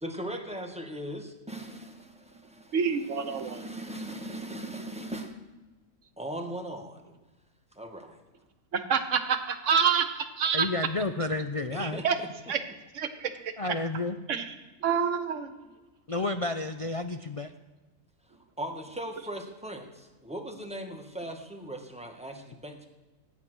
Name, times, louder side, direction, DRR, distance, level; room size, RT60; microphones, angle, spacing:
voice 1, 0.0-5.4 6.2-7.2 7.7-8.2 11.7-12.3 18.6-22.9, right 1 dB, 5° right, 3 dB, 1.4 m, -39 dB
voice 2, 2.7-3.6 8.7-10.7 11.8-12.2 12.5-12.6 12.9-13.5 14.3-14.5 14.8-15.5, right 6 dB, 65° right, 10 dB, 1.3 m, -27 dB
voice 3, 10.5-12.0 13.6-14.2 16.1-17.5, left 2 dB, 50° left, 7 dB, 0.4 m, -31 dB
15.5 x 9.4 x 6.2 m, 1.2 s
omnidirectional pair, 1.4 m